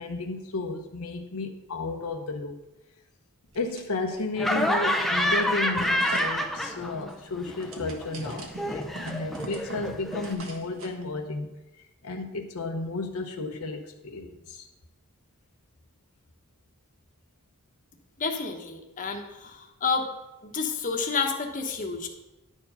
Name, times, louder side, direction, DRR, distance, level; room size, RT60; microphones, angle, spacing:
voice 1, 0.0-2.6 3.5-11.5 12.0-14.7, left 3 dB, 75° left, 4 dB, 0.7 m, -33 dB
sound 1, 3.5-4.2 4.6-11.0, right 2 dB, 65° right, 1.3 m, -43 dB
Laughter, 4.4-7.1 7.4-10.3, equal, ahead, 0.5 m, -28 dB
voice 2, 18.2-20.1 20.4-22.1, left 5 dB, 35° left, 3 dB, 1.0 m, -30 dB
10.5 x 4.6 x 5.5 m, 1.0 s
head